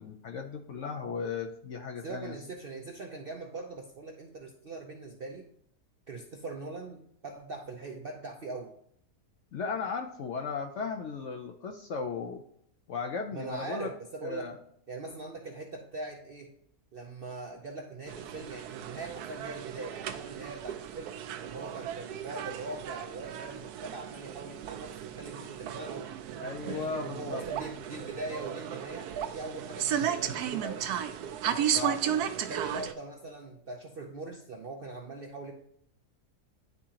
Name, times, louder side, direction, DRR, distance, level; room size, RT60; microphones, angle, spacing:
voice 1, 0.0-2.4 9.5-12.4 12.9-13.9 14.2-14.6 26.4-27.4 31.7-32.0, left 5 dB, 65° left, 4 dB, 0.7 m, -36 dB
voice 2, 2.0-5.5 6.1-8.7 13.3-14.5 14.9-16.5 16.9-21.1 21.4-26.1 26.6-30.9 31.4-31.7 32.5-35.5, right 3 dB, 60° right, 2 dB, 0.6 m, -41 dB
sound 1, 18.1-32.9, right 9 dB, 80° right, 1.1 m, -35 dB
10.5 x 3.7 x 2.8 m, 0.71 s
omnidirectional pair, 1.7 m